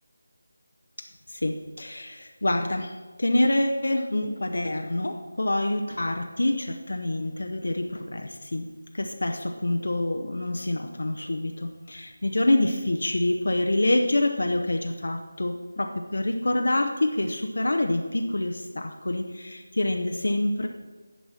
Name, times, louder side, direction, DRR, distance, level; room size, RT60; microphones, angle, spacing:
voice 1, 1.0-8.7 8.9-20.7, left 1 dB, 80° left, 4 dB, 0.8 m, -26 dB
10.0 x 4.2 x 6.2 m, 1.3 s
figure-of-eight pair, 180°, 0 cm